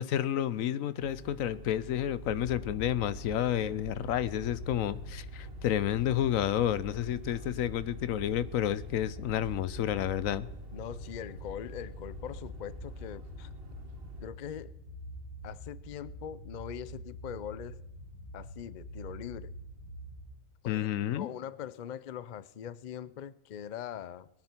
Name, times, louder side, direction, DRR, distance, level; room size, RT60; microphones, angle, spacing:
voice 1, 0.0-10.5 20.6-21.3, left 11 dB, 80° left, 1.1 m, -30 dB
sound 1, 1.0-14.3, right 2 dB, 45° right, 1.4 m, -47 dB
sound 2, 2.2-20.2, equal, 35° left, 3.4 m, -46 dB
voice 2, 10.7-13.5 14.2-14.7 15.4-17.8 18.3-19.5 20.6-24.3, left 9 dB, 60° left, 0.5 m, -42 dB
21.5 x 9.6 x 4.4 m
omnidirectional pair, 1.4 m